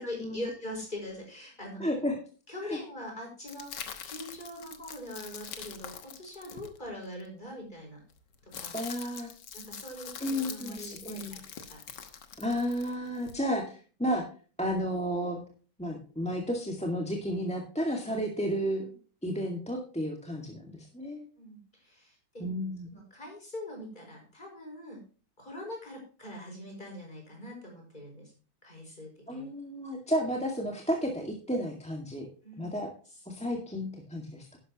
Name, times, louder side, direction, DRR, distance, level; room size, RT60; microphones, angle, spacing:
voice 1, 0.0-1.8 2.5-8.0 8.4-8.8 9.5-11.4 11.7-11.8 18.8-18.9 21.4-22.5 22.9-25.0 25.4-28.3 28.6-29.5 32.4-32.8, left 1 dB, 20° left, 0 dB, 5.5 m, -42 dB
voice 2, 1.8-2.2 2.6-2.8 8.7-9.3 10.2-11.4 12.4-14.2 14.6-15.4 15.8-18.8 19.2-21.3 22.4-22.9 29.3-32.3 32.6-32.9 33.3-34.6, equal, 5° left, 1 dB, 1.7 m, -32 dB
sound 1, 3.5-7.2 8.1-13.4, left 7 dB, 60° left, 1.8 m, -44 dB
11.5 x 11.0 x 3.0 m, 0.37 s
omnidirectional pair, 2.2 m